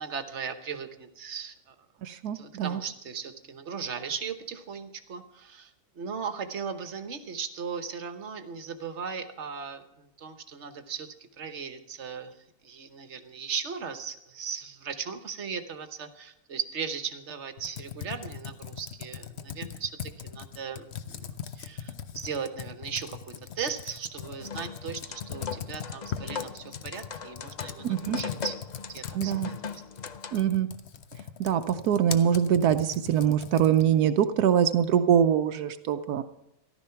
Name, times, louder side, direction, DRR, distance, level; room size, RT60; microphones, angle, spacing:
voice 1, 0.0-1.7 2.3-28.6 28.9-30.0, right 6 dB, 50° right, 9 dB, 1.2 m, -37 dB
voice 2, 2.0-2.8 27.8-28.2 29.1-29.5 30.3-30.7 31.4-36.2, right 9 dB, 80° right, 9 dB, 1.2 m, -24 dB
Computer keyboard, 17.6-34.0, left 8 dB, 55° left, 0.9 m, -40 dB
sound 1, 24.2-30.5, left 6 dB, 80° left, 0.3 m, -39 dB
14.0 x 12.0 x 5.7 m, 0.81 s
omnidirectional pair, 1.6 m